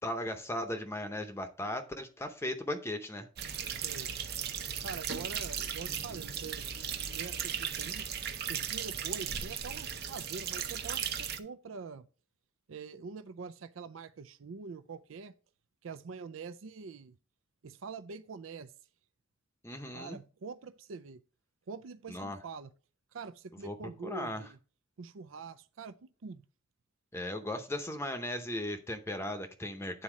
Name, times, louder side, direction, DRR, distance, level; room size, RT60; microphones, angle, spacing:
voice 1, 0.0-3.7 19.6-20.2 22.1-22.4 23.6-23.7 24.0-24.4 27.1-30.0, left 1 dB, 15° left, 0.7 m, -37 dB
sound 1, 3.4-11.4, right 8 dB, 55° right, 0.8 m, -37 dB
voice 2, 3.7-4.1 4.8-6.7 7.0-8.1 8.5-12.1 12.7-15.3 15.8-17.2 17.6-18.7 19.9-21.2 21.7-22.7 23.1-24.6 25.0-26.5, right 5 dB, 90° right, 0.5 m, -45 dB
9.1 x 4.1 x 4.9 m
head